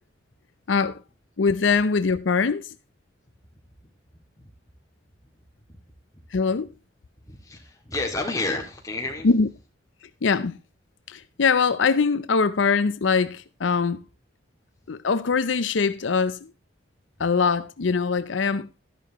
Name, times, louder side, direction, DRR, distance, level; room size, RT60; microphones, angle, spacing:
voice 1, 0.7-1.0 1.4-2.7 6.3-6.7 9.2-9.5 10.2-10.6 11.1-14.0 14.9-16.5 17.2-18.7, left 5 dB, 85° left, 0.6 m, -22 dB
voice 2, 7.3-9.3, left 2 dB, 15° left, 2.2 m, -30 dB
13.0 x 11.0 x 3.0 m
head